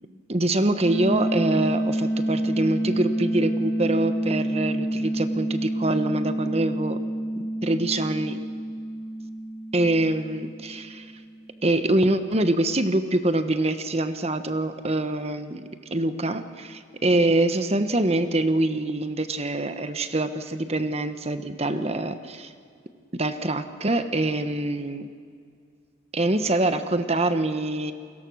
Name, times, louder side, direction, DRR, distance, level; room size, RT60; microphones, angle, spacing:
voice 1, 0.3-7.0 7.6-8.4 9.7-11.1 11.6-22.5 23.1-25.1 26.1-27.9, right 2 dB, 35° right, 9 dB, 1.2 m, -25 dB
sound 1, 0.8-11.5, right 1 dB, 25° left, 4.8 m, -28 dB
29.5 x 22.5 x 6.4 m, 2.2 s
head